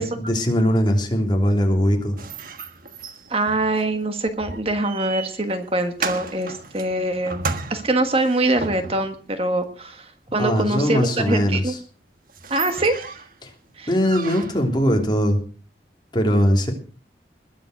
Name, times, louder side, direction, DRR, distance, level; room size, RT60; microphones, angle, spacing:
voice 1, 0.0-2.2 10.4-11.8 13.4-13.5 13.9-15.4 16.1-16.7, equal, 25° left, 2 dB, 3.1 m, -20 dB
sound 1, 2.2-9.2 11.6-11.7 12.0-12.1 12.3-13.4 14.0-14.7, right 4 dB, 50° right, 1.5 m, -34 dB
voice 2, 3.3-11.7 12.5-13.2 13.8-13.9 14.2-14.5, right 2 dB, 35° right, 6 dB, 1.6 m, -24 dB
21.0 x 7.5 x 6.5 m, 0.39 s
head